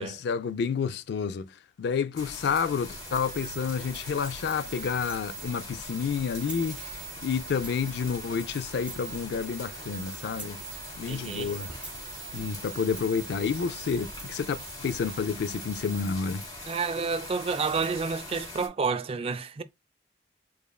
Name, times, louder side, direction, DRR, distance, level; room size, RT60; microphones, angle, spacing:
voice 1, 0.0-1.5 1.8-10.6 11.0-11.7 12.3-16.4, left 6 dB, 65° left, 0.3 m, -30 dB
sound 1, 2.2-18.7, left 2 dB, 25° left, 1.3 m, -42 dB
sound 2, 2.9-16.0, right 10 dB, 90° right, 0.7 m, -45 dB
sound 3, 3.0-6.8 7.3-8.0 8.4-9.2 9.6-11.0 11.3-13.3 13.8-15.2 15.6-16.9 17.2-18.2, right 2 dB, 5° right, 0.8 m, -49 dB
voice 2, 11.1-11.5 16.7-19.6, right 5 dB, 35° right, 0.3 m, -30 dB
5.0 x 2.5 x 2.3 m
head